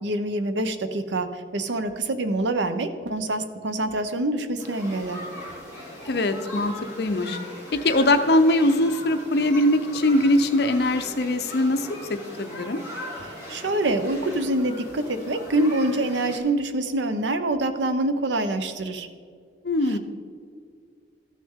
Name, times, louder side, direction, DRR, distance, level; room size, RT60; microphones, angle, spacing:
voice 1, 0.0-5.2 13.2-19.1 19.9-20.0, right 1 dB, 80° right, 9 dB, 0.7 m, -26 dB
sound 1, 4.6-16.4, left 1 dB, 20° right, 2.3 m, -39 dB
voice 2, 6.1-7.4 7.7-12.8 19.6-20.0, left 1 dB, 60° left, 8 dB, 0.6 m, -22 dB
14.0 x 6.4 x 3.6 m, 2.1 s
head